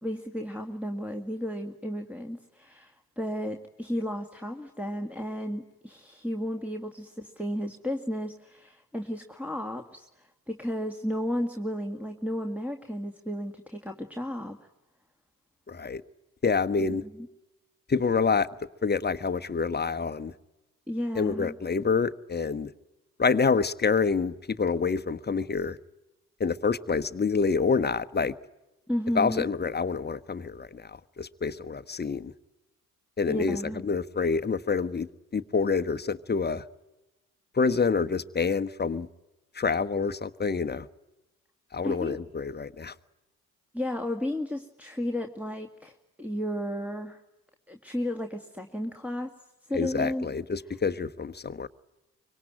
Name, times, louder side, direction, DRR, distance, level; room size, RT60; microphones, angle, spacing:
voice 1, 0.0-14.7 17.2-17.3 20.9-21.6 28.9-29.5 33.3-33.8 41.8-42.2 43.7-47.2 47.7-49.3 49.7-50.3, equal, 5° right, 2.1 m, -33 dB
voice 2, 15.7-16.0 16.4-17.0 17.9-18.5 18.8-20.3 21.1-22.7 23.2-25.8 26.4-28.3 29.1-32.3 33.2-36.6 37.5-39.1 39.5-40.9 41.7-42.9 49.7-51.7, left 5 dB, 25° left, 1.2 m, -27 dB
25.0 x 23.5 x 9.9 m
hypercardioid pair, 50°, 43 cm